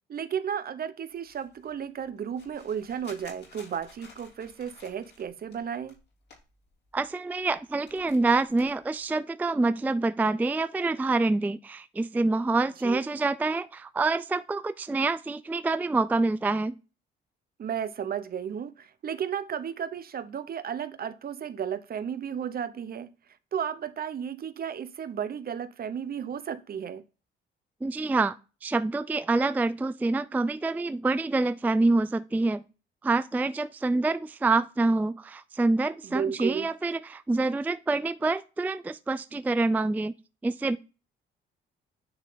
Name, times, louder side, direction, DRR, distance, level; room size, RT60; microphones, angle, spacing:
voice 1, 0.1-6.0 12.8-13.0 17.6-23.1 23.5-27.0 36.0-36.7, right 8 dB, 50° right, 0.8 m, -33 dB
sound 1, 1.1-7.1 7.4-9.1, left 4 dB, 55° left, 3.3 m, -55 dB
voice 2, 6.9-16.7 27.8-28.4 28.6-32.6 33.0-40.1 40.4-40.8, right 3 dB, 10° right, 0.3 m, -26 dB
9.5 x 3.2 x 3.9 m
cardioid pair, 90°, 20 cm